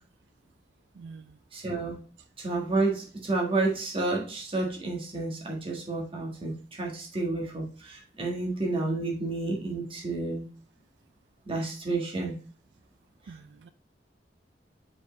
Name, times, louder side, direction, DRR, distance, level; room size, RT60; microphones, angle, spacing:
voice 1, 1.0-1.3 13.3-13.7, right 4 dB, 80° right, 0.4 m, -46 dB
voice 2, 1.5-2.0 2.4-6.5 6.8-10.4 11.5-12.3, right 2 dB, 30° right, 1.6 m, -30 dB
5.3 x 4.7 x 4.1 m
head